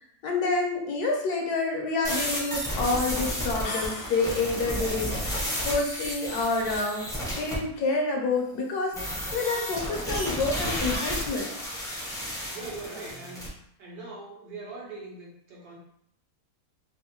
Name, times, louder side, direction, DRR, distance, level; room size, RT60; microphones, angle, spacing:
voice 1, 0.2-7.0 7.4-9.0 9.3-11.5, left 3 dB, 75° left, 0 dB, 1.1 m, -28 dB
sound 1, 2.0-7.6 8.9-13.5, equal, 5° left, 0.4 m, -32 dB
sound 2, 3.6-4.7, left 2 dB, 60° left, 0.8 m, -37 dB
voice 2, 12.5-13.5 13.8-15.8, right 3 dB, 70° right, -4 dB, 1.4 m, -41 dB
3.5 x 2.5 x 2.8 m, 0.72 s
omnidirectional pair, 1.8 m